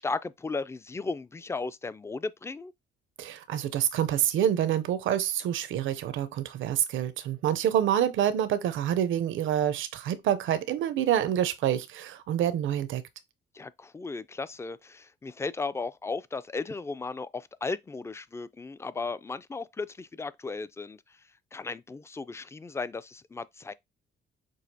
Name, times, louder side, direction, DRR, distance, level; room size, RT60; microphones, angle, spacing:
voice 1, 0.0-2.7 13.5-21.0 21.5-23.7, left 4 dB, 15° left, 0.3 m, -35 dB
voice 2, 3.2-13.0, right 10 dB, 75° right, 0.6 m, -27 dB
6.2 x 2.5 x 2.7 m
cardioid pair, 90°, 20 cm